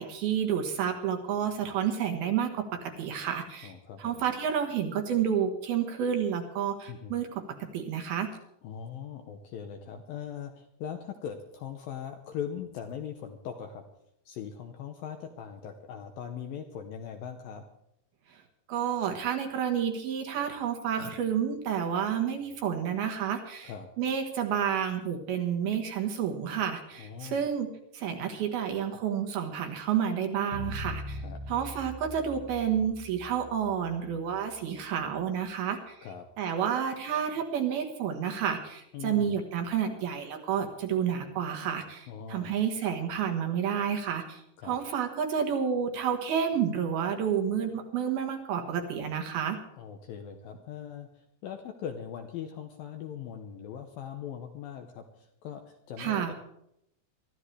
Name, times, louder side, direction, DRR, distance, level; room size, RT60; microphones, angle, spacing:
voice 1, 0.0-3.7 4.0-8.3 18.7-27.7 27.9-36.0 36.4-49.6 56.0-56.3, right 8 dB, 65° right, 4 dB, 3.0 m, -30 dB
voice 2, 3.6-4.2 6.9-7.1 8.6-13.8 14.3-17.6 23.6-23.9 27.0-27.4 31.2-31.4 36.0-36.3 38.9-39.3 42.1-42.6 44.6-44.8 49.8-56.3, left 8 dB, 75° left, 5 dB, 2.2 m, -40 dB
sound 1, 30.5-35.0, left 1 dB, 55° left, 2.9 m, -41 dB
23.0 x 13.5 x 3.3 m, 0.78 s
omnidirectional pair, 5.0 m